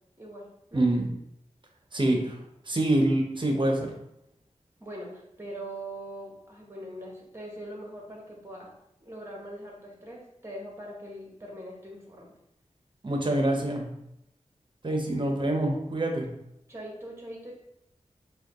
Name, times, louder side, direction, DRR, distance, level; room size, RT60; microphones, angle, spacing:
voice 1, 0.2-0.9 4.8-8.7 9.0-12.3 16.7-17.5, right 1 dB, 20° right, -2 dB, 1.2 m, -42 dB
voice 2, 0.7-1.1 1.9-2.4 2.7-3.9 13.0-13.9 14.8-16.3, right 1 dB, 40° right, 2 dB, 0.8 m, -26 dB
4.8 x 2.3 x 3.0 m, 0.82 s
wide cardioid pair, 60°, 13 cm